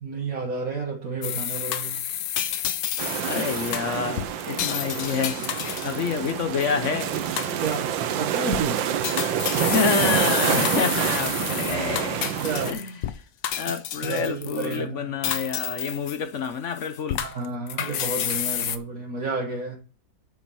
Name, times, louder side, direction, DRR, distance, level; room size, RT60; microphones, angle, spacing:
voice 1, 0.0-2.0 7.6-8.9 12.4-12.8 14.0-15.1 17.2-19.8, right 4 dB, 50° right, 1.9 m, -31 dB
sound 1, 1.2-6.7 7.1-7.9 8.3-8.6 9.0-13.1 13.4-14.8 15.2-16.5 16.8-18.8, left 10 dB, 80° left, 1.5 m, -30 dB
sound 2, 3.0-12.7, right 9 dB, 90° right, 1.6 m, -27 dB
voice 2, 3.3-5.5 5.8-7.1 9.7-12.2 12.7-13.0 13.6-17.2, left 5 dB, 55° left, 0.9 m, -28 dB
9.0 x 5.7 x 6.9 m
omnidirectional pair, 2.0 m